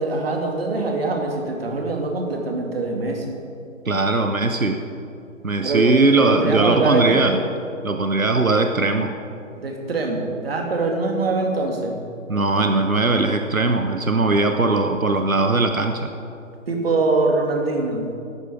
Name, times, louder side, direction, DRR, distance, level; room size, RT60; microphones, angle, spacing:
voice 1, 0.0-3.3 5.6-7.2 9.6-12.0 16.7-18.1, right 3 dB, 45° right, 2 dB, 2.6 m, -23 dB
voice 2, 3.8-4.8 5.4-7.4 7.8-9.1 12.3-16.1, right 3 dB, 90° right, 6 dB, 1.1 m, -19 dB
16.0 x 12.5 x 4.9 m, 2.6 s
figure-of-eight pair, 140°, 40 cm